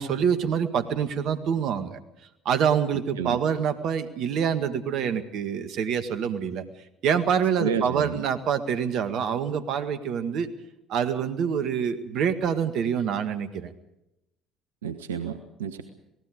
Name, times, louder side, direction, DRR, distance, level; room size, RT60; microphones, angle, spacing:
voice 1, 0.0-2.0 2.5-6.6 7.0-10.5 10.9-13.7, right 7 dB, 60° right, 10 dB, 1.8 m, -26 dB
voice 2, 7.6-8.2 14.8-15.8, right 7 dB, 85° right, 8 dB, 1.2 m, -30 dB
28.0 x 19.0 x 5.2 m, 0.89 s
hypercardioid pair, 60°, 0 cm